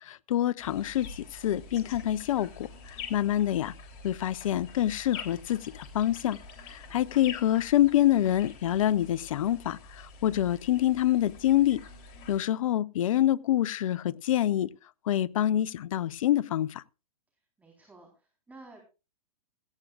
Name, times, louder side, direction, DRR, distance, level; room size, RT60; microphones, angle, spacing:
voice 1, 0.0-3.7 4.0-6.4 6.7-11.8 12.3-14.7 15.1-16.8, left 12 dB, 60° left, 0.7 m, -26 dB
sound 1, 0.6-12.4, left 4 dB, 35° left, 3.3 m, -46 dB
voice 2, 6.8-7.2 17.3-18.8, right 2 dB, 10° right, 4.0 m, -54 dB
17.0 x 15.5 x 2.5 m
hypercardioid pair, 120°, 19 cm